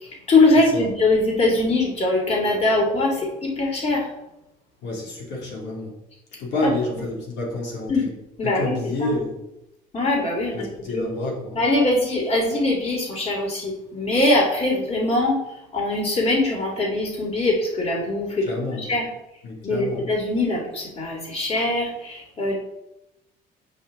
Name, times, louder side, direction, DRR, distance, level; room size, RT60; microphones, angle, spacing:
voice 1, 0.0-4.1 7.9-8.1 8.4-8.7 9.0-9.2 9.9-11.0 11.5-15.4 15.7-19.1 19.6-22.5, left 2 dB, 40° left, 0 dB, 2.6 m, -22 dB
voice 2, 4.8-5.9 6.4-7.9 8.4-9.4 10.5-11.6 18.4-18.9 19.4-20.0, left 2 dB, 85° left, -2 dB, 2.4 m, -28 dB
8.0 x 5.8 x 3.7 m, 0.88 s
cardioid pair, 110°, 17 cm